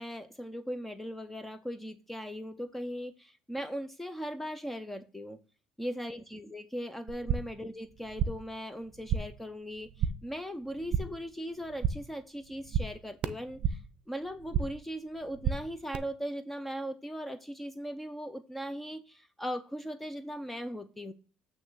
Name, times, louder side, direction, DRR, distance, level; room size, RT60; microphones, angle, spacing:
voice 1, 0.0-5.4 5.8-13.8 14.1-21.1, equal, 5° left, 0.5 m, -39 dB
sound 1, 7.1-7.6 7.9-8.5 8.8-9.5 9.7-10.3 10.6-11.3 11.6-12.2 12.4-14.0 14.3-14.9 15.2-16.0, right 7 dB, 50° right, 0.6 m, -33 dB
8.7 x 3.2 x 6.2 m
cardioid pair, 135°, 2 cm